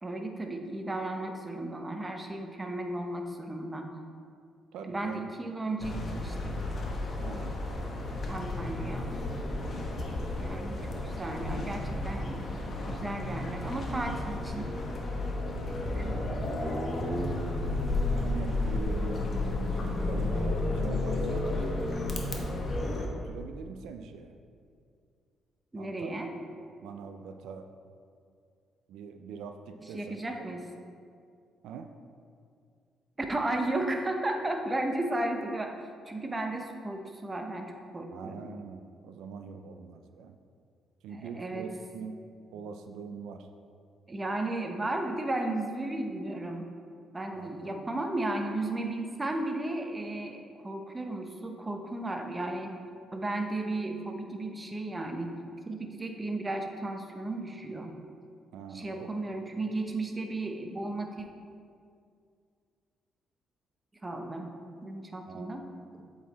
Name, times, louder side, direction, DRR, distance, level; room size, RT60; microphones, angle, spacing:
voice 1, 0.0-3.9 4.8-6.5 7.8-7.9 8.3-9.1 10.4-12.4 12.9-14.7 15.9-16.2 25.7-26.3 29.9-30.6 33.2-35.7 36.1-38.5 41.1-41.7 44.1-46.6 47.1-50.4 50.6-52.7 53.1-55.3 55.6-57.9 58.7-61.3 64.0-64.5 64.8-65.7, right 2 dB, 20° right, 3 dB, 0.7 m, -34 dB
voice 2, 4.7-5.3 6.4-6.7 7.2-7.6 18.1-19.4 19.8-21.6 23.0-24.4 25.8-26.1 26.8-27.7 28.9-30.2 31.6-31.9 38.1-40.4 41.0-42.2 42.5-43.5 47.3-47.7 58.5-59.1 65.3-65.5, right 5 dB, 90° right, 7 dB, 0.3 m, -43 dB
sound 1, 5.8-23.1, left 2 dB, 45° left, 0.9 m, -32 dB
7.7 x 4.0 x 4.0 m, 2.3 s
cardioid pair, 90°, 0 cm